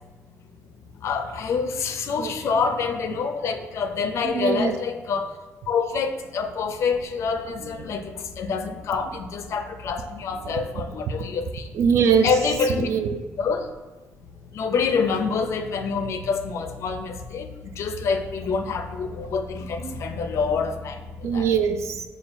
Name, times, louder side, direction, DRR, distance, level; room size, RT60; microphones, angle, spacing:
voice 1, 1.0-5.3 5.7-11.7 12.2-12.9 13.4-13.7 14.5-21.5, left 5 dB, 60° left, 7 dB, 0.4 m, -26 dB
voice 2, 4.2-4.7 10.4-10.5 11.7-12.3 12.7-13.2 19.8-20.0 21.2-22.0, right 6 dB, 60° right, 7 dB, 0.3 m, -22 dB
6.1 x 2.2 x 2.5 m, 1.2 s
cardioid pair, 115°, 5 cm